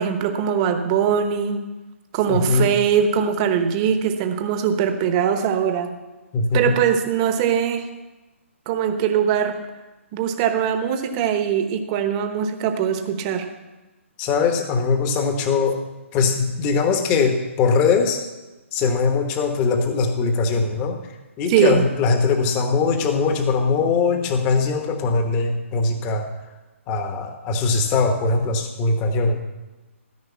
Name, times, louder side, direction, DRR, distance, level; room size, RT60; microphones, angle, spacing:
voice 1, 0.0-1.6 2.1-5.9 6.5-7.8 8.7-9.6 10.1-13.5 21.5-21.8, right 8 dB, 25° right, 7 dB, 1.0 m, -21 dB
voice 2, 2.3-2.7 6.3-6.7 14.2-15.8 16.1-18.2 18.7-21.0 21.4-26.3 26.9-29.4, left 4 dB, 20° left, 6 dB, 1.1 m, -21 dB
14.0 x 5.3 x 8.3 m, 1.1 s
hypercardioid pair, 155°, 7 cm